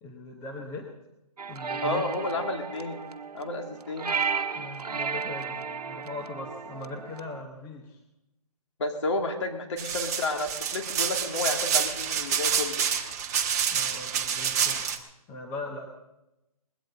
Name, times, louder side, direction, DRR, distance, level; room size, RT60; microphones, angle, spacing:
voice 1, 0.0-0.9 1.5-2.0 4.5-8.0 13.7-14.9 15.3-15.9, left 2 dB, 15° left, 2 dB, 1.0 m, -40 dB
sound 1, 1.4-7.4, right 5 dB, 80° right, 1.2 m, -34 dB
voice 2, 1.8-3.0 3.3-4.1 8.8-12.9, left 2 dB, 50° left, 3 dB, 2.8 m, -31 dB
sound 2, 9.8-15.0, right 8 dB, 25° right, 1.2 m, -28 dB
20.5 x 16.5 x 4.0 m, 0.93 s
hypercardioid pair, 160°, 20 cm